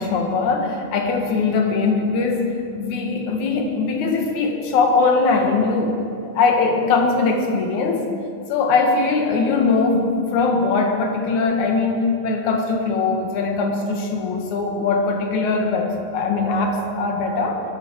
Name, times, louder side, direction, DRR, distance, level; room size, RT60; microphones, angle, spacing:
voice 1, 0.0-6.0 6.2-8.1 8.5-17.6, left 4 dB, 60° left, 2 dB, 2.9 m, -21 dB
20.0 x 15.0 x 4.8 m, 2.5 s
omnidirectional pair, 4.1 m